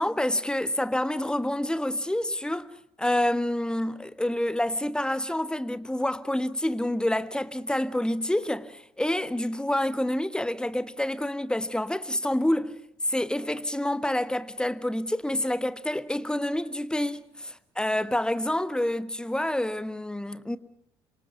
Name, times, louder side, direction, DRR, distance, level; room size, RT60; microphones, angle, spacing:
voice 1, 0.0-2.7 3.0-12.7 13.1-20.6, left 1 dB, 5° left, 1.4 m, -28 dB
27.5 x 24.5 x 5.8 m
figure-of-eight pair, 50°, 14 cm